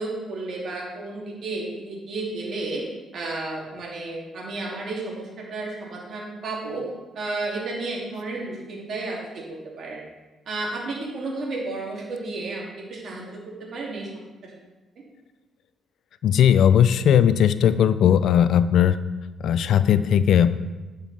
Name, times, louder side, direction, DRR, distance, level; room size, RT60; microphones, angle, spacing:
voice 1, 0.0-2.8 3.1-6.8 7.1-10.0 10.5-13.2 13.7-14.1 14.4-14.5, right 2 dB, 60° right, -2 dB, 2.5 m, -32 dB
voice 2, 16.2-19.0 19.4-20.5, left 9 dB, 75° left, 14 dB, 0.4 m, -18 dB
10.0 x 5.2 x 4.2 m, 1.2 s
cardioid pair, 90°, 0 cm